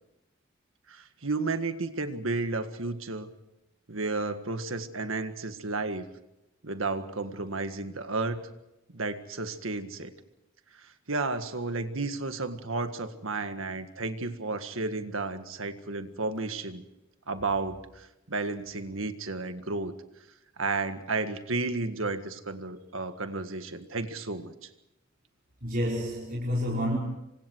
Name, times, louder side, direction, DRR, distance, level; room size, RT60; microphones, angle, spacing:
voice 1, 0.9-3.3 3.9-6.1 6.6-8.5 8.9-10.1 10.8-16.8 17.3-19.9 20.6-24.7, right 3 dB, 75° right, 9 dB, 1.8 m, -32 dB
voice 2, 25.6-27.0, equal, 45° right, -4 dB, 5.0 m, -29 dB
28.0 x 25.0 x 4.7 m, 0.89 s
head